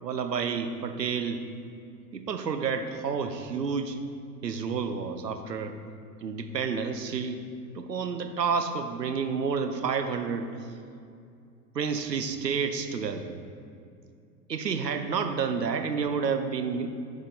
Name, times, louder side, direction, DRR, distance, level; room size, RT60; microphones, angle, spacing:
voice 1, 0.0-1.4 2.1-4.0 4.4-5.8 6.2-7.4 7.7-10.5 11.7-13.3 14.5-16.9, right 5 dB, 80° right, 7 dB, 0.9 m, -30 dB
10.0 x 6.8 x 4.2 m, 2.4 s
figure-of-eight pair, 90°, 49 cm